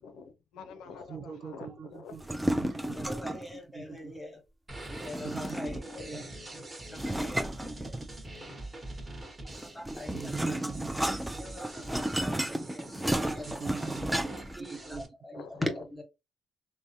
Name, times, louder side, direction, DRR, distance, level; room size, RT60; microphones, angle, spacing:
voice 1, 0.0-2.1 15.3-15.7, left 5 dB, 85° left, 0.4 m, -47 dB
voice 2, 1.1-3.3 3.7-4.1 5.2-5.7 6.1-6.2 10.1-11.1 13.3-15.0, right 5 dB, 50° right, 0.6 m, -43 dB
sound 1, 2.1-3.5 5.0-5.9 7.0-8.4 9.5-14.6, right 1 dB, 5° right, 0.3 m, -33 dB
voice 3, 3.0-4.4 4.9-6.2 6.9-8.0 9.4-10.6 11.4-13.9 14.6-16.0, left 1 dB, 10° left, 1.0 m, -41 dB
sound 2, 4.7-15.1, right 1 dB, 25° right, 1.0 m, -44 dB
3.4 x 2.0 x 2.6 m
cardioid pair, 90°, 0 cm